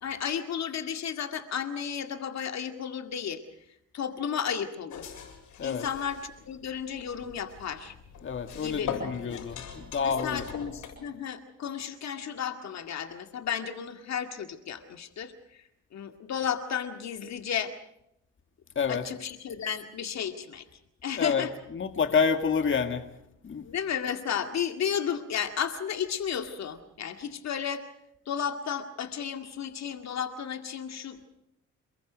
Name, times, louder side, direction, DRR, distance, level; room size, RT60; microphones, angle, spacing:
voice 1, 0.0-3.4 3.9-5.1 5.6-7.9 8.6-9.5 10.0-15.6 15.9-17.7 18.9-20.6 21.0-21.5 23.6-27.8 28.3-31.3, left 8 dB, 60° left, 7 dB, 2.1 m, -33 dB
sound 1, 4.9-10.9, left 7 dB, 80° left, 7.2 m, -41 dB
voice 2, 8.2-10.4 18.8-19.1 21.2-21.5 21.7-23.1 23.4-23.6, left 6 dB, 40° left, 7 dB, 2.1 m, -28 dB
28.0 x 22.0 x 5.2 m, 0.78 s
cardioid pair, 90°, 30 cm